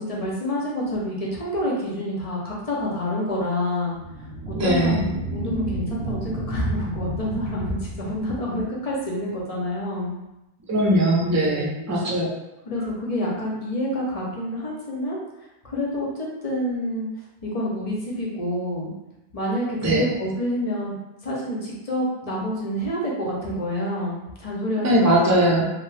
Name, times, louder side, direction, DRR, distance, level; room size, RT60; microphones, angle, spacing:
voice 1, 0.0-4.0 4.5-10.1 11.5-12.2 12.7-15.2 15.6-17.1 17.4-18.9 19.3-20.9 21.2-25.2, left 1 dB, 40° left, -4 dB, 0.7 m, -28 dB
sound 1, 3.9-8.9, right 1 dB, 70° right, 0.8 m, -32 dB
voice 2, 4.5-5.0 10.7-12.3 19.8-20.0 24.8-25.6, right 1 dB, 25° right, -4 dB, 0.4 m, -20 dB
2.7 x 2.1 x 3.2 m, 0.94 s
omnidirectional pair, 1.0 m